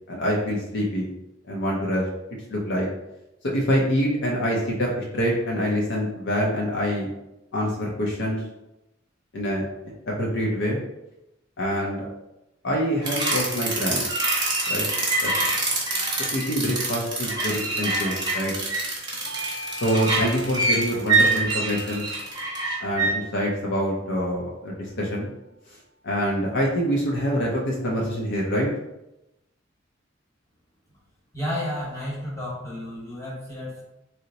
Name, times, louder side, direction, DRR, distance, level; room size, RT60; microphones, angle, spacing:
voice 1, 0.1-1.1 1.5-2.0 2.5-2.9 3.4-7.1 7.5-8.4 9.3-9.7 10.1-10.8 11.6-12.1 12.6-14.0 14.7-14.9 15.2-15.5 16.3-18.5 19.8-22.0 22.8-25.3 26.0-28.7, equal, 65° left, -2 dB, 0.6 m, -25 dB
sound 1, 13.0-23.1, right 3 dB, 20° right, 0.7 m, -25 dB
Bell / Doorbell, 19.3-24.1, equal, 65° right, 0.4 m, -41 dB
voice 2, 31.3-33.8, left 1 dB, 15° left, -7 dB, 1.2 m, -32 dB
2.8 x 2.0 x 3.9 m, 0.91 s
head